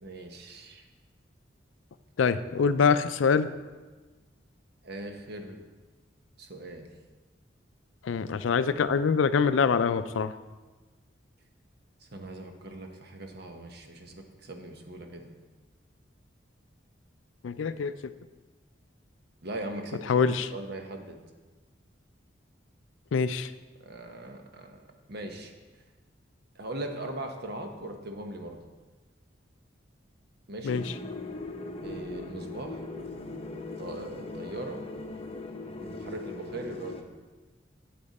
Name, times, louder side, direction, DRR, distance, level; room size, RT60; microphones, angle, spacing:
voice 1, 0.0-0.8 2.9-3.0 4.8-5.6 6.4-6.9 12.1-15.3 19.4-20.1 20.5-21.2 23.8-24.8 25.1-25.5 26.5-28.6 30.5-30.8 31.8-32.8 33.8-34.8 35.8-37.1, right 1 dB, 60° right, 4 dB, 1.0 m, -40 dB
voice 2, 2.2-3.5 8.0-10.3 17.4-17.9 20.1-20.5 23.1-23.5 30.6-30.8, left 5 dB, 90° left, 13 dB, 0.4 m, -24 dB
sound 1, 30.7-37.0, left 3 dB, 30° left, 0.7 m, -39 dB
8.5 x 7.9 x 4.2 m, 1.3 s
head